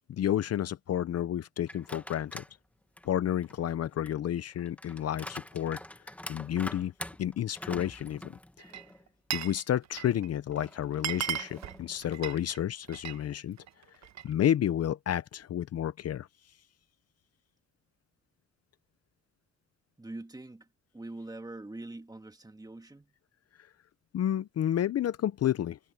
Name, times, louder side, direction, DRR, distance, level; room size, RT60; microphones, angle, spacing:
voice 1, 0.1-2.4 3.0-5.8 6.3-6.9 7.2-8.7 9.3-13.6 14.2-16.3 24.1-25.8, left 11 dB, 55° left, 0.7 m, -30 dB
sound 1, 1.7-2.6 3.0-9.1 9.4-9.5 10.5-12.0, left 1 dB, 5° left, 1.5 m, -45 dB
Glass, 8.6-9.6 9.8-10.3 10.6-10.7 10.9-13.2 13.6-14.3, right 11 dB, 65° right, 1.2 m, -36 dB
voice 2, 20.0-20.7 20.9-23.1, right 2 dB, 10° right, 1.9 m, -43 dB
cardioid pair, 90°, 30 cm